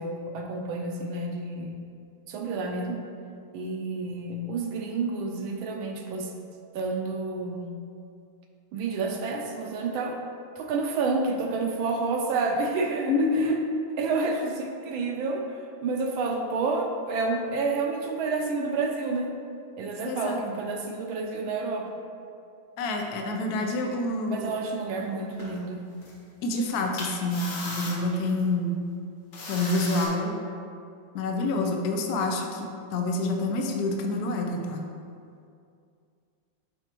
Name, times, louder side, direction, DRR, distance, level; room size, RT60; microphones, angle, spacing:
voice 1, 0.0-1.8 2.3-3.0 3.5-6.3 6.7-7.7 8.7-10.2 10.6-13.6 14.0-19.3 19.8-21.9 24.3-25.9, right 3 dB, 75° right, 2 dB, 1.4 m, -29 dB
voice 2, 13.1-13.5 20.0-20.4 22.8-24.5 26.4-28.7 29.5-30.3 31.1-34.8, left 2 dB, 80° left, 2 dB, 0.8 m, -27 dB
sound 1, 25.4-25.6 26.0-26.1 27.0-28.4 29.3-30.1, left 2 dB, 55° left, 1.9 m, -36 dB
7.7 x 4.9 x 3.0 m, 2.4 s
omnidirectional pair, 2.4 m